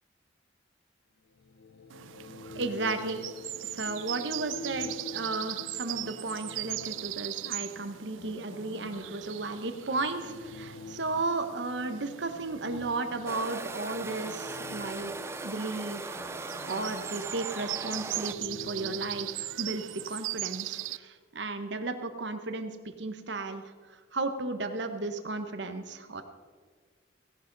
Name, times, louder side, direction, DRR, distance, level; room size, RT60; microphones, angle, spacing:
sound 1, 1.3-20.1, left 3 dB, 70° left, 0.5 m, -47 dB
sound 2, 1.9-21.0, right 16 dB, 90° right, 0.3 m, -40 dB
voice 1, 2.5-3.2 3.7-15.1 15.4-16.2 16.6-23.7 24.1-26.2, right 3 dB, 70° right, 8 dB, 1.0 m, -34 dB
sound 3, 13.3-18.3, right 3 dB, 15° right, 0.4 m, -39 dB
17.0 x 11.0 x 4.0 m, 1.5 s
head